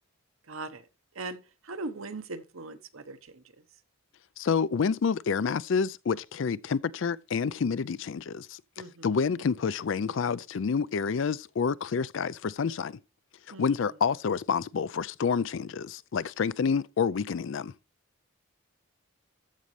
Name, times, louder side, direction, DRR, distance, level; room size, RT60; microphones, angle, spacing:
voice 1, 0.5-0.9 1.1-1.4 1.6-3.6 8.8-9.3 13.5-13.9, right 3 dB, 70° right, 1.0 m, -40 dB
voice 2, 4.4-8.6 9.0-13.0 13.5-17.7, left 6 dB, 60° left, 0.4 m, -28 dB
14.0 x 5.2 x 3.2 m
head